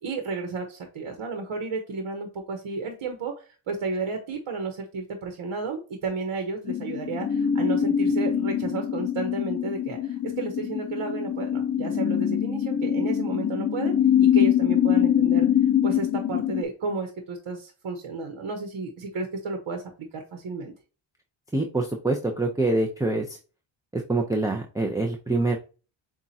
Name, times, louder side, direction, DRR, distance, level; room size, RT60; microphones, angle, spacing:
voice 1, 0.0-13.9 14.2-15.5 15.8-20.7, right 4 dB, 65° right, 4 dB, 1.1 m, -32 dB
sound 1, 6.7-16.6, left 9 dB, 35° left, 0.4 m, -24 dB
voice 2, 21.5-23.4 23.9-25.6, right 2 dB, 5° right, 1 dB, 0.6 m, -25 dB
7.2 x 2.5 x 2.8 m, 0.34 s
cardioid pair, 70°, 50 cm